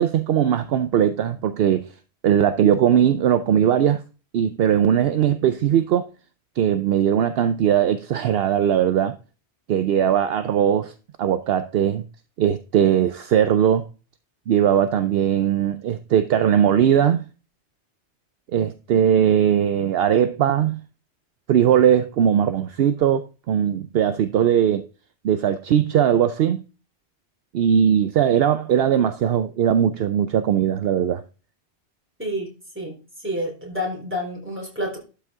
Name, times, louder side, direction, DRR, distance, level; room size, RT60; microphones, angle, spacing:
voice 1, 0.0-1.9 2.2-4.0 4.3-6.1 6.6-9.2 9.7-10.9 11.2-12.0 12.4-13.9 14.5-17.2 18.5-20.8 21.5-24.8 25.2-26.6 27.5-31.2, right 9 dB, 65° right, 0.8 m, -19 dB
voice 2, 32.2-33.0 33.2-35.0, equal, 10° right, 3.8 m, -29 dB
12.0 x 5.5 x 3.6 m
omnidirectional pair, 1.2 m